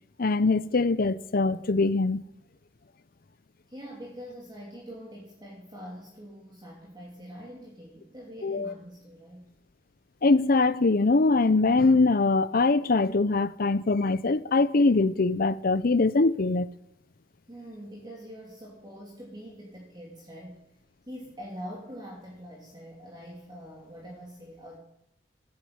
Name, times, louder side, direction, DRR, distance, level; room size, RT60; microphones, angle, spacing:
voice 1, 0.2-2.2 8.4-8.7 10.2-16.7, left 3 dB, 50° left, 0.7 m, -23 dB
voice 2, 3.7-9.5 17.5-20.7 21.1-24.8, equal, 25° right, 2.9 m, -44 dB
14.5 x 9.3 x 8.8 m
head